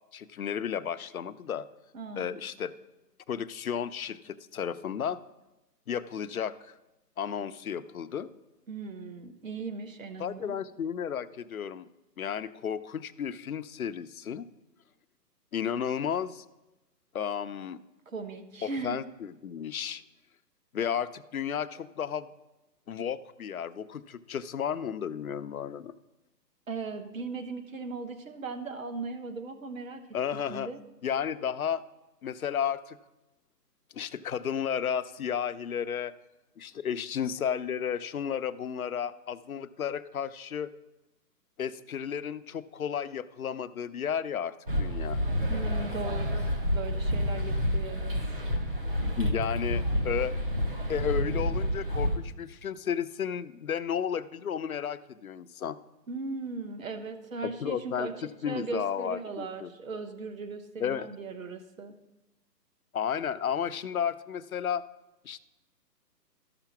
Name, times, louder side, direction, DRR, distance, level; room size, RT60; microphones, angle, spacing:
voice 1, 0.1-1.7 2.2-2.7 3.3-5.2 5.9-6.7 7.2-8.3 10.2-11.9 12.2-14.5 15.5-16.4 17.1-17.8 18.6-20.0 20.7-22.3 22.9-25.9 30.1-30.7 31.0-31.8 32.2-33.0 33.9-36.1 36.6-40.7 41.6-45.2 49.2-50.4 50.9-55.8 57.6-58.1 58.4-59.7 60.8-61.1 62.9-64.8 65.2-65.4, left 8 dB, 60° left, 11 dB, 0.5 m, -33 dB
voice 2, 1.9-2.4 8.7-10.5 18.1-19.0 26.7-30.0 30.5-30.8 45.5-48.1 56.1-58.1 58.4-61.9, right 4 dB, 50° right, 8 dB, 1.2 m, -38 dB
sound 1, 44.7-52.2, equal, 30° right, 1.0 m, -29 dB
13.0 x 5.9 x 5.8 m, 1.0 s
hypercardioid pair, 175°, 50 cm